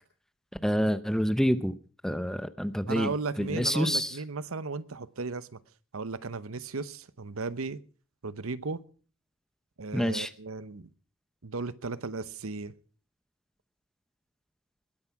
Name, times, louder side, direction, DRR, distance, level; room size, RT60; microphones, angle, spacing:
voice 1, 0.6-1.8 2.0-4.2 9.9-10.3, equal, ahead, 0.7 m, -27 dB
voice 2, 2.9-5.6 5.9-7.8 8.2-8.8 9.8-10.9 11.4-12.7, right 4 dB, 85° right, 0.9 m, -35 dB
21.0 x 9.7 x 5.9 m
head